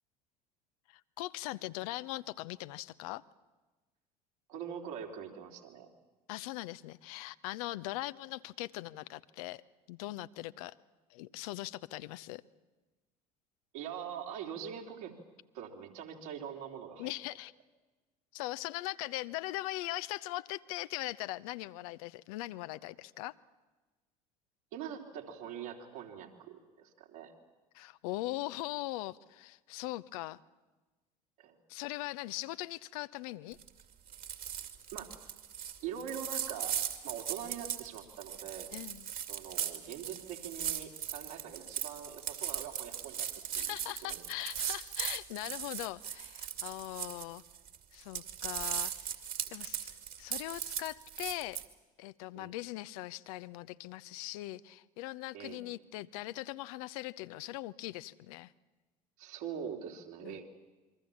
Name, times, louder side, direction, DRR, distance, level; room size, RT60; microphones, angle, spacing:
voice 1, 0.9-3.2 6.3-9.6 9.9-10.8 11.1-12.4 17.0-17.5 18.3-23.3 27.7-30.4 31.7-33.6 38.7-39.1 43.6-47.4 47.9-49.2 49.5-51.6 52.0-58.5 60.2-60.4, left 17 dB, 65° left, 15 dB, 0.7 m, -40 dB
voice 2, 4.5-5.9 13.7-15.1 15.5-17.1 24.7-27.3 31.4-31.6 34.9-35.1 35.8-38.7 39.3-43.3 43.5-43.7 44.0-44.2 52.3-52.5 55.3-55.6 59.2-60.5, right 8 dB, 70° right, 0 dB, 3.7 m, -43 dB
sound 1, 33.5-33.8 34.1-47.8 48.0-51.6, right 9 dB, 45° right, 2.5 m, -38 dB
27.5 x 23.5 x 7.2 m, 1.2 s
figure-of-eight pair, 65°, 20 cm